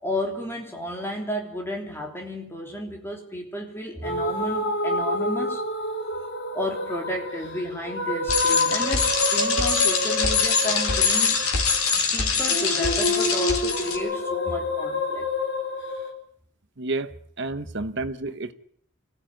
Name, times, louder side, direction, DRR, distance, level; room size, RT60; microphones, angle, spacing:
voice 1, 0.0-5.7 6.5-11.4 12.1-15.3 18.2-18.3, equal, 10° left, 3.4 m, -32 dB
sound 1, 4.0-16.1, left 2 dB, 55° left, 3.2 m, -28 dB
Bicycle, 8.3-14.0, left 5 dB, 80° left, 3.9 m, -23 dB
voice 2, 16.8-17.1 17.4-18.5, right 2 dB, 55° right, 1.2 m, -30 dB
24.5 x 16.0 x 9.1 m
head